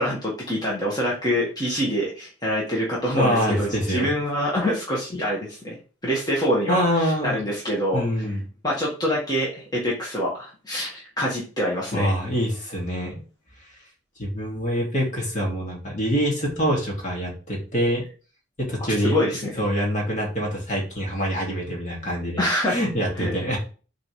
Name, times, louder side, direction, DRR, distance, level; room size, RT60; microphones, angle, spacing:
voice 1, 0.0-5.8 6.0-8.0 8.6-12.1 19.0-19.5 22.4-22.8 23.2-23.3, equal, 20° left, -5 dB, 1.7 m, -25 dB
voice 2, 3.1-4.1 6.7-7.4 7.9-8.4 11.9-13.2 14.2-18.0 18.6-23.6, equal, 40° left, -2 dB, 2.4 m, -25 dB
7.7 x 4.0 x 3.3 m, 0.37 s
head